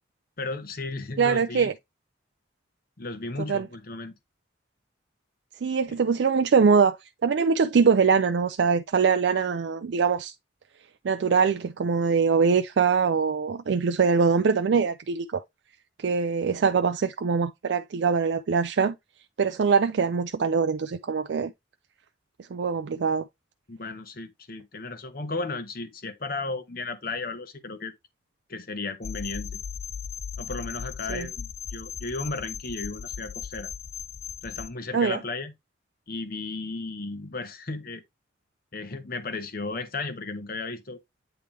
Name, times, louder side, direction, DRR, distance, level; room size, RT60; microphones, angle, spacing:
voice 1, 0.4-1.7 3.0-4.1 5.9-6.0 23.7-27.9 28.5-29.6 30.4-33.7 34.4-35.5 36.1-38.0 38.7-41.0, left 3 dB, 50° left, 1.1 m, -34 dB
voice 2, 1.2-1.7 3.5-3.6 5.6-7.0 7.2-10.3 11.0-15.4 16.0-18.9 19.4-21.5 22.5-23.2 31.1-31.3 34.9-35.2, right 5 dB, 65° right, 0.4 m, -23 dB
sound 1, 29.0-34.7, left 7 dB, 35° left, 0.4 m, -37 dB
8.9 x 3.3 x 3.3 m
head